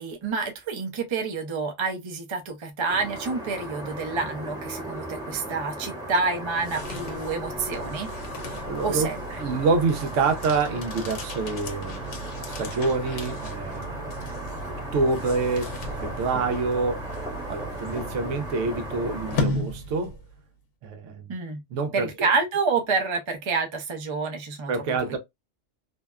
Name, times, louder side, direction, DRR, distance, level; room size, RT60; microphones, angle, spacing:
voice 1, 0.0-8.1 8.8-9.2 21.3-21.6 21.9-24.7, right 4 dB, 40° right, 0.4 m, -28 dB
sound 1, 2.9-19.4, right 1 dB, 5° right, 0.8 m, -36 dB
sound 2, 6.4-20.4, left 1 dB, 75° left, 1.0 m, -36 dB
voice 2, 8.7-9.1 9.4-12.0 12.5-14.0 14.7-15.7 16.0-17.1 17.5-20.2 20.8-21.3 21.7-22.3 24.7-25.2, right 4 dB, 80° right, 0.9 m, -27 dB
2.7 x 2.1 x 2.2 m
omnidirectional pair, 1.3 m